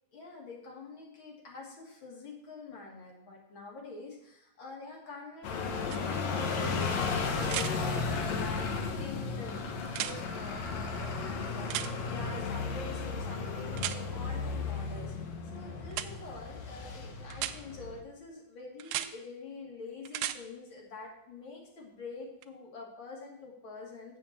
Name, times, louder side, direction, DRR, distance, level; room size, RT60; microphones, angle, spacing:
voice 1, 0.1-15.1 15.4-24.2, left 3 dB, 40° left, -2 dB, 2.3 m, -46 dB
sound 1, 5.4-18.0, left 4 dB, 70° left, 1.7 m, -34 dB
sound 2, 5.9-6.0 7.5-7.7 9.9-10.2 11.7-11.9 13.8-14.0 15.9-16.1 17.3-17.6 18.8-19.1 20.1-20.4 22.4-22.5, right 13 dB, 85° right, 2.3 m, -34 dB
7.8 x 6.1 x 7.2 m, 0.79 s
omnidirectional pair, 4.3 m